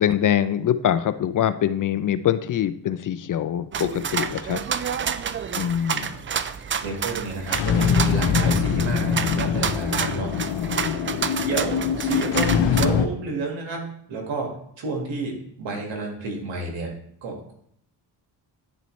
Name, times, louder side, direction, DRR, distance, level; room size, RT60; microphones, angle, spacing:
voice 1, 0.0-4.6 5.5-6.2 10.3-11.0, left 10 dB, 45° left, 13 dB, 0.4 m, -24 dB
sound 1, 3.7-12.9, right 7 dB, 30° right, 0.4 m, -29 dB
voice 2, 6.8-10.3 10.9-11.0 11.4-13.8 14.1-16.9 17.2-17.5, right 3 dB, 75° right, 1 dB, 1.8 m, -30 dB
sound 2, 7.4-13.1, left 7 dB, 75° left, 0.7 m, -23 dB
9.9 x 4.1 x 3.1 m, 0.69 s
cardioid pair, 65°, 45 cm